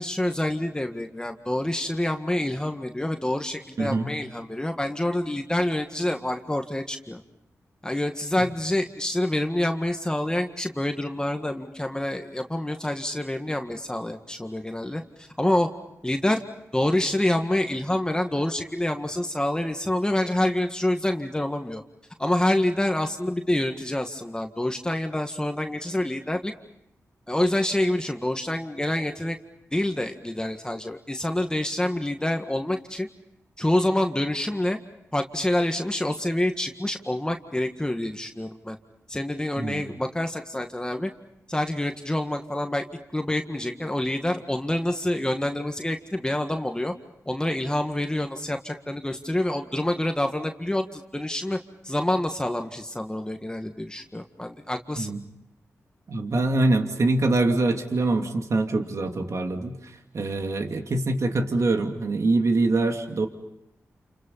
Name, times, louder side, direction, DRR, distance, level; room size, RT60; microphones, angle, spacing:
voice 1, 0.0-7.2 7.8-15.7 16.0-16.4 16.7-21.8 22.2-26.5 27.3-29.4 29.7-33.1 33.6-34.8 35.1-38.8 39.1-41.1 41.5-42.8 43.1-46.9 47.3-51.6 51.8-55.1, left 1 dB, 15° left, 4 dB, 1.8 m, -27 dB
voice 2, 3.8-4.1 39.6-39.8 55.0-55.2 56.1-59.8 60.1-63.3, right 2 dB, 65° right, 4 dB, 2.6 m, -24 dB
29.0 x 29.0 x 5.7 m, 0.82 s
cardioid pair, 50°, 6 cm